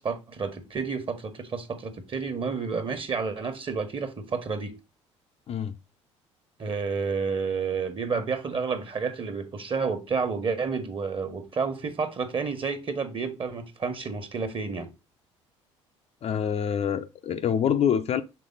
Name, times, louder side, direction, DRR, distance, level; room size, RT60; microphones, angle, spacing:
voice 1, 0.0-4.8 6.6-14.9, right 5 dB, 35° right, 1.4 m, -30 dB
voice 2, 16.2-18.2, left 8 dB, 40° left, 0.6 m, -26 dB
6.7 x 3.8 x 3.8 m
figure-of-eight pair, 55°, 16 cm